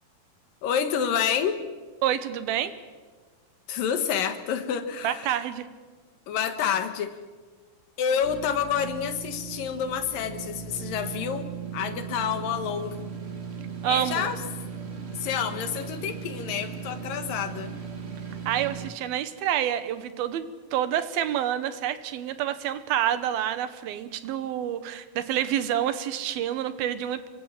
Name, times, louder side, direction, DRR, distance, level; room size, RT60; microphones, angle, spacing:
voice 1, 0.6-1.6 3.7-5.4 6.3-7.2 8.0-13.0 13.8-14.4 15.1-17.7, left 8 dB, 70° left, 9 dB, 3.1 m, -28 dB
voice 2, 2.0-2.7 5.0-5.7 13.8-14.3 18.5-27.3, right 11 dB, 80° right, 12 dB, 3.1 m, -28 dB
sound 1, 8.2-18.9, right 6 dB, 40° right, 0.9 m, -37 dB
26.0 x 24.0 x 7.5 m, 1.4 s
omnidirectional pair, 4.2 m